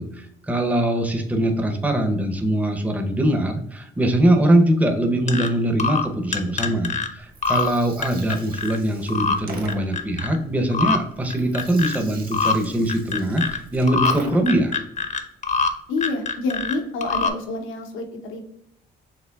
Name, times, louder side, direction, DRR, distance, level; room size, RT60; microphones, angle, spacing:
voice 1, 0.0-14.8, right 1 dB, 5° right, 5 dB, 0.6 m, -22 dB
sound 1, 5.3-5.5 5.8-6.1 6.3-7.1 7.4-7.7 8.0-8.8 9.1-9.4 9.7-10.4 10.7-11.0 11.3-12.0 12.3-12.6 12.9-13.6 13.9-14.1 14.5-15.7 16.0-16.8 17.0-17.3, left 5 dB, 35° left, 0.6 m, -23 dB
Gurgling, 7.2-14.7, right 3 dB, 50° right, 1.2 m, -42 dB
voice 2, 15.9-18.4, left 3 dB, 90° left, 3 dB, 0.8 m, -28 dB
5.8 x 3.4 x 2.2 m, 0.74 s
cardioid pair, 90°, 20 cm